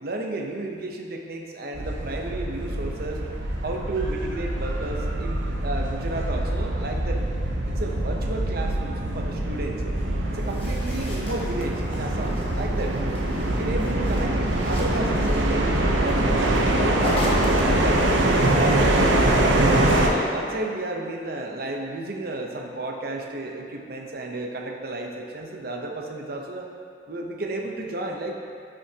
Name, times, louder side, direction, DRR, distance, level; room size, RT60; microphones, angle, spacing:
voice 1, 0.0-3.2 3.6-7.2 7.7-9.8 10.3-13.0 13.5-16.4 16.9-18.0 18.6-19.6 19.9-26.7 27.1-28.4, right 2 dB, 55° right, 2 dB, 0.8 m, -32 dB
sound 1, 1.8-20.1, right 1 dB, 90° right, 0.9 m, -24 dB
sound 2, 10.3-18.2 19.4-20.2, left 1 dB, 30° left, 1.2 m, -38 dB
12.5 x 6.2 x 2.9 m, 2.2 s
head